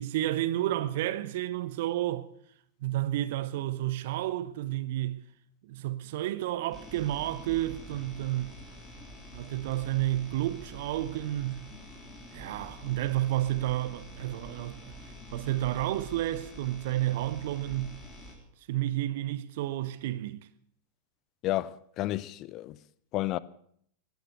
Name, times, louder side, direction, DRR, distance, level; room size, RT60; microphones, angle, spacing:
voice 1, 0.0-2.3 2.8-5.2 5.7-8.5 9.3-11.7 12.3-14.9 15.3-18.0 18.7-20.5, right 14 dB, 50° right, 1.0 m, -31 dB
sound 1, 6.7-18.3, equal, 10° left, 3.7 m, -47 dB
voice 2, 21.4-22.8 23.1-23.4, left 15 dB, 35° left, 0.6 m, -31 dB
18.0 x 9.5 x 7.8 m
figure-of-eight pair, 90°, 0 cm